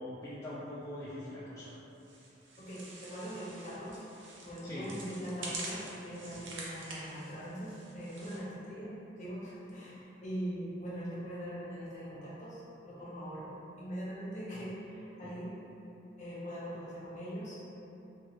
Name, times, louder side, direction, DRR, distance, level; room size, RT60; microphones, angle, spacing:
voice 1, 0.0-1.8 4.6-4.9 15.2-15.3, left 1 dB, 15° left, -11 dB, 0.3 m, -42 dB
sound 1, 2.0-8.4, right 2 dB, 80° right, 0.6 m, -46 dB
voice 2, 2.6-4.0 4.4-15.6 16.2-17.6, equal, 40° left, -8 dB, 0.8 m, -41 dB
3.0 x 2.4 x 2.8 m, 2.9 s
head